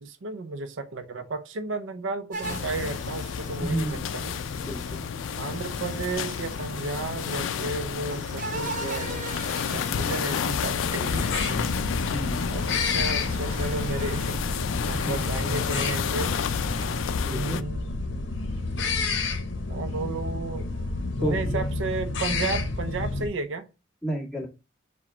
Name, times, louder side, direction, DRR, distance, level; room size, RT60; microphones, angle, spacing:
voice 1, 0.0-4.4 5.4-9.2 9.7-11.6 12.5-14.4 14.9-16.4 17.2-17.9 19.7-20.7 21.1-23.7, right 3 dB, 85° right, 0.6 m, -33 dB
sound 1, 2.3-17.0, right 2 dB, 45° right, 0.8 m, -40 dB
sound 2, 2.4-17.6, left 7 dB, 85° left, 0.3 m, -31 dB
voice 2, 3.6-4.1 4.6-5.0 12.1-12.4 15.0-15.3 17.3-17.6 21.2-21.6 24.0-24.5, right 1 dB, 5° left, 1.6 m, -31 dB
angrysquirrel creepingtruck, 11.1-23.3, left 3 dB, 70° left, 0.8 m, -30 dB
4.8 x 2.3 x 4.3 m
head